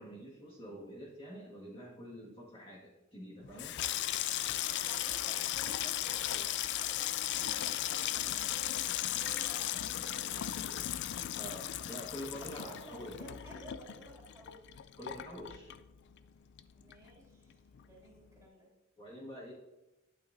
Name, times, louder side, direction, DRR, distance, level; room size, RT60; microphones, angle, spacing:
voice 1, 0.0-3.7 11.4-13.2 15.0-15.7 19.0-19.5, equal, 25° left, -6 dB, 1.8 m, -46 dB
Water tap faucet / Sink (filling or washing), 3.4-16.3 16.6-17.2 17.5-17.8, left 12 dB, 55° left, 0.3 m, -36 dB
voice 2, 4.8-6.5 6.8-10.9 12.4-14.6 16.7-17.6 17.8-18.7, right 1 dB, 15° right, -4 dB, 2.6 m, -54 dB
11.0 x 8.7 x 2.6 m, 1.0 s
head